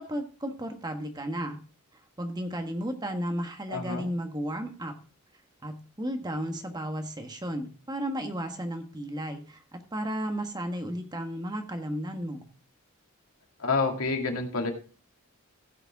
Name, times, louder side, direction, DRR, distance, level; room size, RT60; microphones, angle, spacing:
voice 1, 0.0-1.6 1.9-4.9 5.6-12.5, equal, 20° right, 5 dB, 1.4 m, -34 dB
voice 2, 3.7-4.1 13.6-14.7, left 4 dB, 90° left, 2 dB, 2.3 m, -28 dB
16.0 x 6.7 x 3.5 m, 0.36 s
head